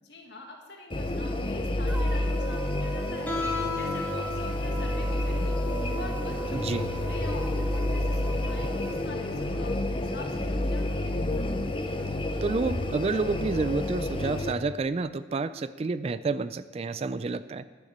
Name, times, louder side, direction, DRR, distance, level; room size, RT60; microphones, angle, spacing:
voice 1, 0.0-3.4 3.7-5.6 5.9-11.2, left 2 dB, 70° left, 1 dB, 1.8 m, -45 dB
sound 1, 0.9-14.5, left 1 dB, 30° left, 0.7 m, -29 dB
sound 2, 1.9-9.1, right 2 dB, 10° right, 0.7 m, -39 dB
Guitar, 3.3-9.0, left 3 dB, 10° left, 1.7 m, -37 dB
voice 2, 6.5-6.9 12.4-17.6, right 3 dB, 35° right, 15 dB, 0.3 m, -29 dB
11.0 x 6.6 x 7.3 m, 1.4 s
head